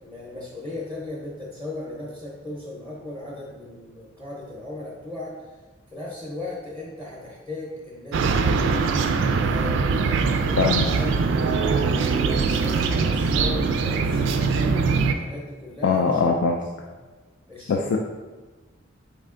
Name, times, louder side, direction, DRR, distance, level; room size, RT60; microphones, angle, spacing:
voice 1, 0.0-5.3 5.9-8.6 9.3-16.3 16.8-16.9 17.5-18.0, left 2 dB, 10° left, -5 dB, 0.7 m, -37 dB
sound 1, 8.1-15.1, right 4 dB, 65° right, 0.3 m, -22 dB
voice 2, 10.6-10.9 15.8-16.6 17.7-18.0, left 5 dB, 75° left, 2 dB, 0.3 m, -21 dB
4.2 x 3.3 x 3.6 m, 1.3 s
head